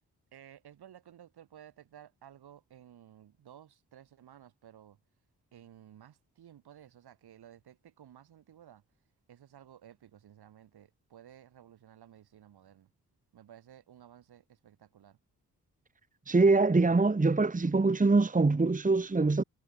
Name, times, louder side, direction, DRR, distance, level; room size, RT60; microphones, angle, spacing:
voice 1, 0.3-5.0 5.5-8.8 9.3-12.9 13.3-15.2, right 10 dB, 75° right, 7.5 m, -55 dB
voice 2, 16.3-19.4, right 3 dB, 20° right, 1.4 m, -24 dB
hypercardioid pair, 40°, 39 cm